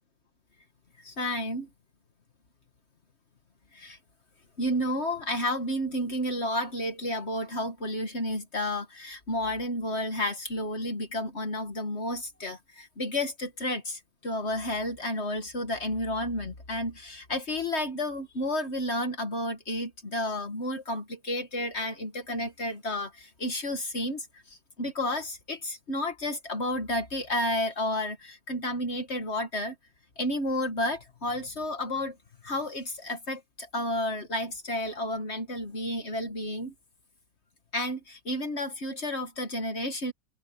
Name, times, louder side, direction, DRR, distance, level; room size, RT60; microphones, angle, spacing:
voice 1, 1.0-1.7 3.7-4.0 4.6-29.7 30.2-32.2 32.4-36.7 37.7-40.1, left 1 dB, 50° left, 2.1 m, -31 dB
omnidirectional pair, 1.4 m